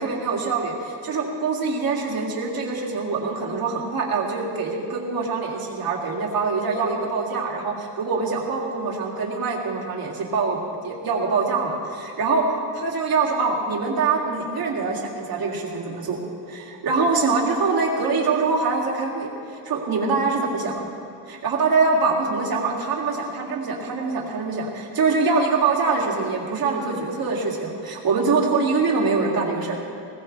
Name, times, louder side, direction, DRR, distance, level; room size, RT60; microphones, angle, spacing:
voice 1, 0.0-10.6 10.8-12.4 12.7-16.2 16.5-20.8 21.3-29.8, right 4 dB, 50° right, -1 dB, 2.6 m, -24 dB
20.5 x 17.5 x 3.4 m, 2.6 s
cardioid pair, 155°, 45 cm